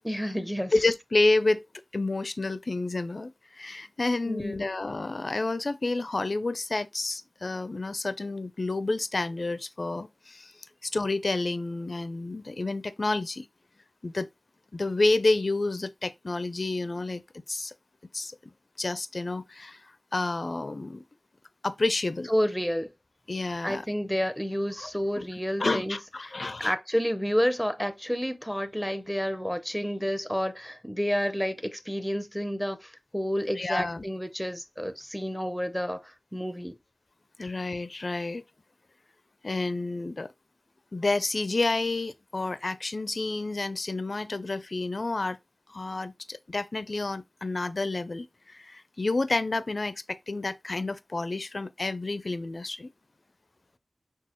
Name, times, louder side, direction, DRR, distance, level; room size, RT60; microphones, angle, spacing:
voice 1, 0.0-0.7 4.2-4.7 22.3-22.9 23.6-26.0 26.2-26.3 26.6-36.8, equal, ahead, 0.6 m, -30 dB
voice 2, 0.7-1.7 1.9-10.5 10.8-13.5 14.0-14.3 14.7-17.2 17.5-17.7 18.1-18.3 18.8-19.8 20.1-21.0 21.6-22.3 23.3-23.8 24.8-24.9 25.2-25.3 25.6-26.7 33.6-34.0 37.4-38.4 39.4-40.3 40.9-45.4 45.7-49.9 50.3-52.9, left 2 dB, 50° left, 0.4 m, -29 dB
6.1 x 2.3 x 3.0 m
wide cardioid pair, 85°, 0 cm